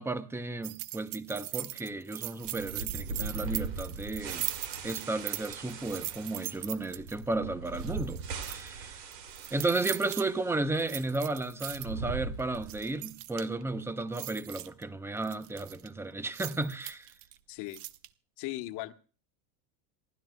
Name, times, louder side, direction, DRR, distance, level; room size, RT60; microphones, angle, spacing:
voice 1, 0.0-4.5 4.8-9.0 9.5-17.1, right 2 dB, 5° right, 0.6 m, -34 dB
sound 1, 0.6-7.2 7.7-8.7 9.1-10.2 10.8-11.9 12.4-13.6 14.0-14.8 15.2-15.9 16.3-17.4 17.7-18.1, right 16 dB, 65° right, 1.0 m, -39 dB
sound 2, 2.4-10.6 10.9-11.0 11.6-13.0, right 4 dB, 80° right, 3.1 m, -40 dB
voice 2, 17.5-17.8 18.4-18.9, left 17 dB, 55° left, 1.3 m, -37 dB
27.5 x 12.5 x 2.2 m
supercardioid pair, 130°, 49 cm